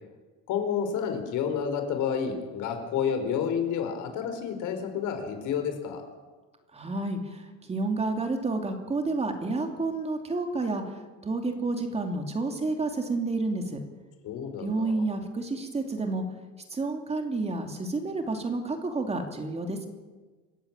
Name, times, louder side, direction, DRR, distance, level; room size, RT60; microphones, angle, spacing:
voice 1, 0.5-6.0 14.2-15.0, left 7 dB, 70° left, 7 dB, 4.7 m, -30 dB
voice 2, 6.7-13.8 14.6-16.2 16.7-19.9, right 3 dB, 20° right, 4 dB, 2.7 m, -30 dB
26.5 x 15.0 x 8.9 m, 1.3 s
cardioid pair, 160°, 32 cm